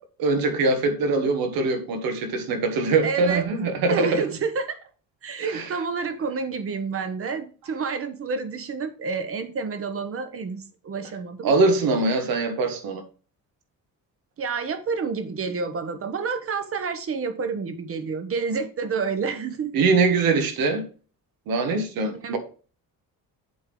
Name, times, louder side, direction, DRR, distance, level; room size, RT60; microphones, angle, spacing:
voice 1, 0.2-4.2 5.5-5.6 11.4-13.0 19.7-20.8 21.5-22.4, right 3 dB, 80° right, 1.6 m, -22 dB
voice 2, 3.0-3.4 3.9-4.9 5.2-11.5 14.4-19.7 22.1-22.3, right 5 dB, 40° right, 1.0 m, -29 dB
7.9 x 3.6 x 5.3 m
cardioid pair, 145°, 35 cm